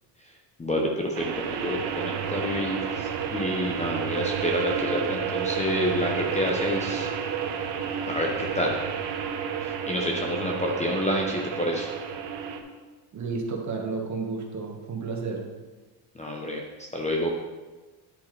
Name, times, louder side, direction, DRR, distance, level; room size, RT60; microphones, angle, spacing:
voice 1, 0.6-7.1 8.1-8.7 9.6-11.9 16.2-16.6 16.9-17.3, left 1 dB, 15° left, 0 dB, 0.8 m, -28 dB
sound 1, 1.1-12.6, right 7 dB, 60° right, 1.2 m, -30 dB
voice 2, 13.1-15.4, right 4 dB, 35° right, 1 dB, 1.5 m, -31 dB
10.0 x 8.1 x 3.3 m, 1.3 s
cardioid pair, 140°, 47 cm